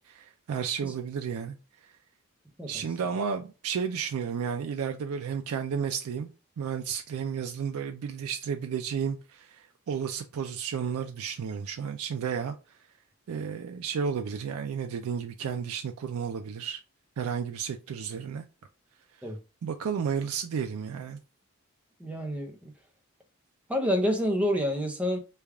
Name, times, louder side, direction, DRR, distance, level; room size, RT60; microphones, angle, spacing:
voice 1, 0.0-1.6 1.8-1.9 2.7-6.3 6.6-12.5 13.3-16.8 17.2-18.4 19.6-21.2, right 7 dB, 85° right, 0.4 m, -32 dB
voice 2, 22.0-22.7 23.7-25.2, equal, 5° right, 0.5 m, -28 dB
3.3 x 2.3 x 3.5 m
head